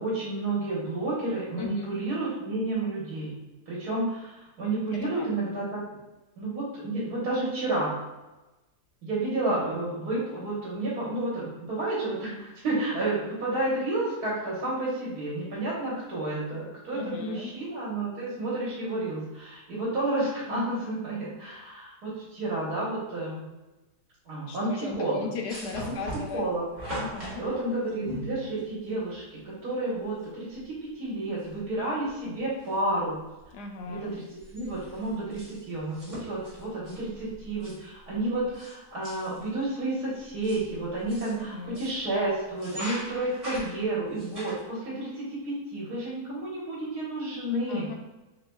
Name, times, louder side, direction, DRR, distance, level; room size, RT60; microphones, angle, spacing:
voice 1, 0.0-3.4 3.7-5.8 6.4-7.9 9.0-23.4 24.3-25.3 25.8-26.0 26.3-26.6 27.4-33.2 33.9-48.0, right 2 dB, 75° right, -8 dB, 1.7 m, -31 dB
voice 2, 1.6-1.9 4.9-5.3 9.6-9.8 16.9-17.5 24.5-26.5 27.0-27.4 33.5-34.1 41.3-41.8 47.7-48.0, left 4 dB, 85° left, 3 dB, 1.2 m, -37 dB
sound 1, 25.5-29.1 30.2-30.3 30.6-30.7 31.4-31.8 32.1-32.9 33.3-33.5 33.8-38.7 39.0-39.5 40.1-42.0 42.5-44.6, right 1 dB, 25° right, 1.6 m, -40 dB
5.0 x 3.0 x 2.2 m, 1.1 s
omnidirectional pair, 1.7 m